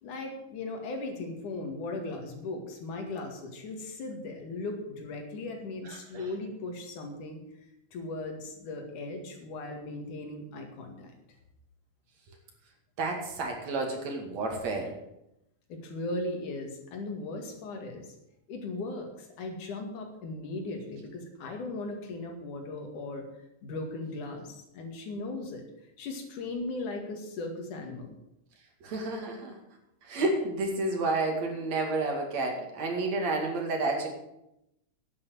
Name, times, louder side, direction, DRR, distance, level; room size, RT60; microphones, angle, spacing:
voice 1, 0.0-7.4 7.9-11.1 15.7-18.1 18.5-23.3 23.6-25.6 26.0-28.1, left 2 dB, 90° left, 3 dB, 3.6 m, -37 dB
voice 2, 5.9-6.3 13.0-15.0 28.8-29.6 30.0-34.1, right 2 dB, 65° right, 2 dB, 3.5 m, -30 dB
10.5 x 8.9 x 8.0 m, 0.84 s
omnidirectional pair, 3.4 m